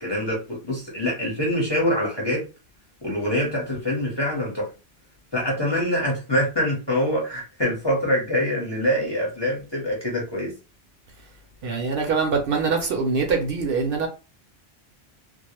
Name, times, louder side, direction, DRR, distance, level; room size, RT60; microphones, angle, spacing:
voice 1, 0.0-2.4 3.0-4.7 5.3-10.5, equal, 25° left, 0.8 m, -25 dB
voice 2, 11.6-14.1, right 4 dB, 65° right, 0.7 m, -23 dB
2.3 x 2.0 x 3.0 m
omnidirectional pair, 1.1 m